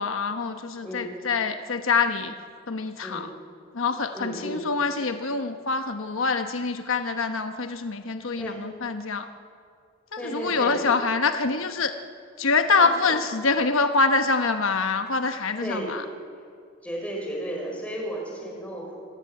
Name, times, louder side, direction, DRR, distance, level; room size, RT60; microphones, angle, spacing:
voice 1, 0.0-2.3 2.7-3.3 3.7-9.3 10.1-12.0 12.4-16.0, left 4 dB, 75° left, 7 dB, 1.1 m, -25 dB
voice 2, 0.8-1.1 3.0-3.3 4.1-4.6 8.4-8.6 10.2-11.0 12.7-12.9 15.6-16.0 16.8-18.9, right 1 dB, 5° left, -1 dB, 6.1 m, -34 dB
25.5 x 18.5 x 8.3 m, 2.2 s
head